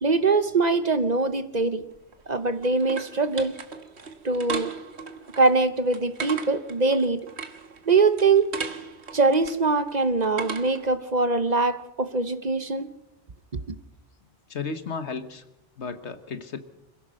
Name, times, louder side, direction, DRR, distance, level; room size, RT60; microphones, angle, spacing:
voice 1, 0.0-1.8 2.3-3.6 4.2-4.7 5.4-7.2 7.9-8.5 9.1-12.9 13.5-13.6, right 3 dB, 40° right, 11 dB, 0.9 m, -22 dB
sound 1, 1.9-10.9, right 5 dB, 70° right, 1.7 m, -38 dB
voice 2, 14.5-15.4 15.8-16.6, left 5 dB, 75° left, 10 dB, 1.6 m, -33 dB
26.5 x 16.0 x 6.4 m, 0.95 s
omnidirectional pair, 1.2 m